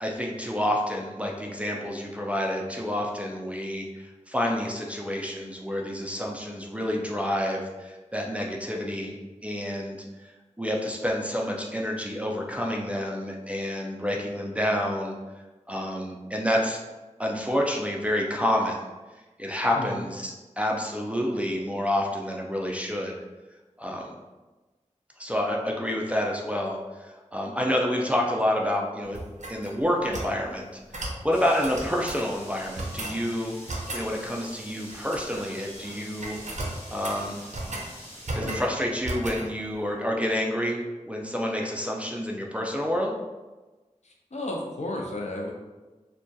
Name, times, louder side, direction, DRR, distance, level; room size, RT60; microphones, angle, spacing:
voice 1, 0.0-9.2 9.4-10.0 10.6-15.1 15.7-16.8 17.2-18.8 19.4-23.2 23.8-24.1 25.2-29.2 29.5-30.7 30.9-33.5 33.9-36.4 36.9-37.4 38.3-40.8 41.1-43.1, equal, 10° right, -2 dB, 0.4 m, -28 dB
sound 1, 29.1-30.4 30.9-31.2 31.6-32.3 32.8-33.2 33.7-34.1 34.9-35.5 35.7-36.0 36.2-37.9 38.2-38.7 39.0-39.5, right 1 dB, 65° right, 0.5 m, -34 dB
sound 2, 31.3-38.3, equal, 15° left, 0.7 m, -45 dB
voice 2, 44.0-45.5, left 1 dB, 60° left, 0 dB, 0.5 m, -33 dB
2.6 x 2.2 x 2.2 m, 1.2 s
wide cardioid pair, 40°, 13 cm